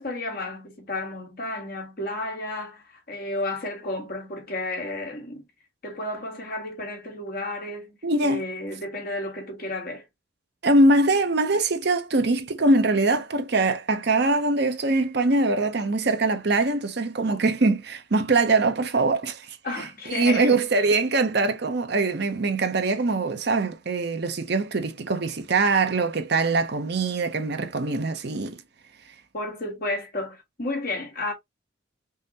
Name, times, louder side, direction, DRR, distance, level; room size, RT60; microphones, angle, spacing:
voice 1, 0.0-5.5 5.8-10.0 19.6-20.6 29.3-31.3, left 2 dB, 45° left, 1.4 m, -32 dB
voice 2, 8.0-8.4 10.6-19.6 20.1-28.6, right 2 dB, 55° right, 0.6 m, -23 dB
5.5 x 2.1 x 2.8 m
head